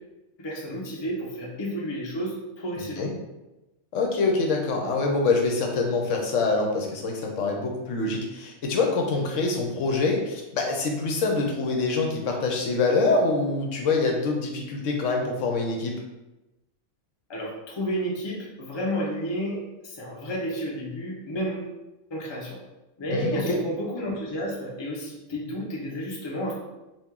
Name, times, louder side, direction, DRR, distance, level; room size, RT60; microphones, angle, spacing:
voice 1, 0.4-3.1 17.3-21.7 22.1-22.6 23.0-26.5, equal, 25° left, -3 dB, 0.6 m, -31 dB
voice 2, 3.9-16.0 23.1-23.6, left 3 dB, 75° left, 1 dB, 1.0 m, -25 dB
4.3 x 2.4 x 3.6 m, 1.0 s
omnidirectional pair, 1.4 m